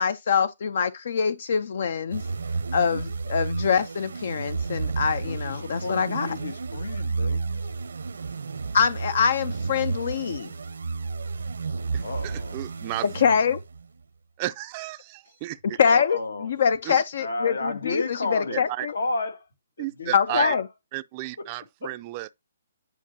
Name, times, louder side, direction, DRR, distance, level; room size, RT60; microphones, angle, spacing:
voice 1, 0.0-2.2 2.7-6.3 8.7-10.5 13.1-13.6 15.8-19.0 20.1-20.6, left 6 dB, 55° left, 0.4 m, -24 dB
sound 1, 2.1-13.9, right 4 dB, 85° right, 0.8 m, -32 dB
voice 2, 5.2-7.6 12.0-12.6 15.8-16.5 17.2-19.4 19.8-20.6 21.4-21.5 21.8-21.9, left 3 dB, 85° left, 1.7 m, -32 dB
voice 3, 11.9-13.1 14.4-15.8 16.8-17.0 18.5-18.9 19.8-20.5 20.9-22.3, right 17 dB, 25° right, 0.4 m, -33 dB
9.7 x 4.6 x 2.7 m
hypercardioid pair, 160°, 0 cm